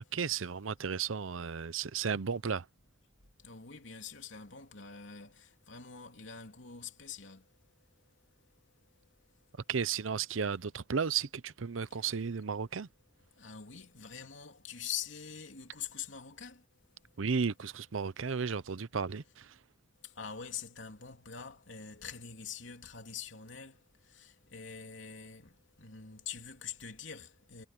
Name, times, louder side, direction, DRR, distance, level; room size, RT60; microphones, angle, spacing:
voice 1, 0.1-2.7 9.7-12.9 17.2-19.5, right 6 dB, 85° right, 0.7 m, -34 dB
voice 2, 3.4-7.5 11.9-12.0 13.4-16.6 17.0-17.1 20.0-27.7, left 7 dB, 70° left, 3.3 m, -45 dB
head